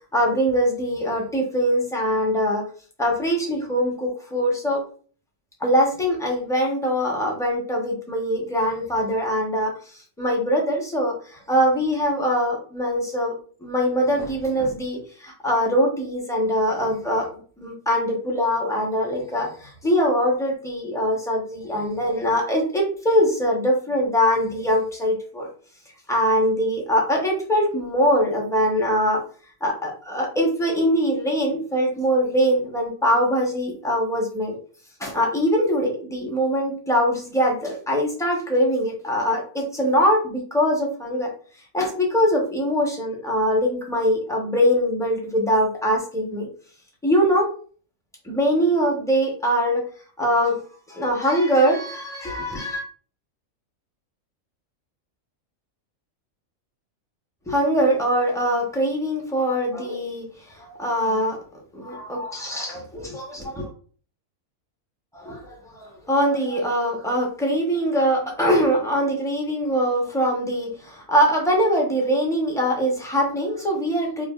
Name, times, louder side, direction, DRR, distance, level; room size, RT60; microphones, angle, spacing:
voice 1, 0.1-2.6 3.0-4.8 5.6-13.4 13.6-25.5 26.1-29.2 29.6-34.5 35.0-41.3 41.7-46.5 47.0-47.5 48.2-49.8 50.2-50.6 50.9-52.8 57.5-60.3 60.5-61.4 61.7-63.7 65.1-74.2, equal, 5° left, -1 dB, 0.6 m, -22 dB
4.8 x 2.5 x 2.3 m, 0.43 s
omnidirectional pair, 1.5 m